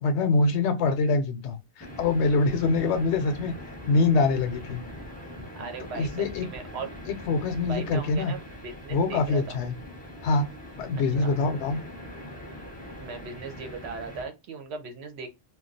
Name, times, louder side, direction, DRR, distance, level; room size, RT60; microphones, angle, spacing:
voice 1, 0.0-3.5 3.8-4.8 5.9-6.5 7.1-8.3 8.9-9.8 10.2-10.5 10.8-11.8, left 3 dB, 85° left, 0.9 m, -24 dB
sound 1, 1.8-14.2, left 1 dB, 10° left, 0.6 m, -42 dB
voice 2, 5.5-6.9 7.6-9.6 11.0-11.3 13.0-15.3, right 4 dB, 70° right, 0.9 m, -38 dB
2.3 x 2.3 x 3.8 m
omnidirectional pair, 1.1 m